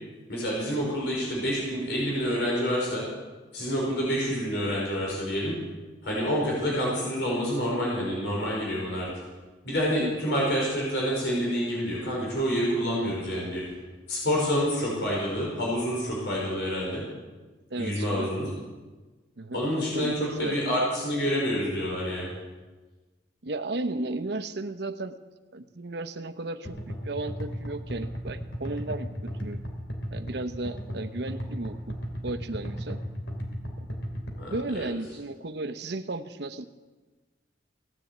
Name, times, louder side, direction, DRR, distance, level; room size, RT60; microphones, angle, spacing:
voice 1, 0.3-3.0 3.5-5.6 6.0-9.1 9.6-13.6 14.1-17.0 17.8-18.5 19.5-22.3 34.4-34.8, equal, 65° left, -3 dB, 5.1 m, -28 dB
voice 2, 17.7-18.3 19.4-19.6 19.9-20.5 23.4-25.1 25.5-29.6 30.1-32.0 32.2-33.0 33.8-33.9 34.5-36.6, right 2 dB, 65° right, 10 dB, 0.9 m, -34 dB
sound 1, 26.6-34.6, equal, 85° left, 2.9 m, -35 dB
17.0 x 10.5 x 8.1 m, 1.3 s
head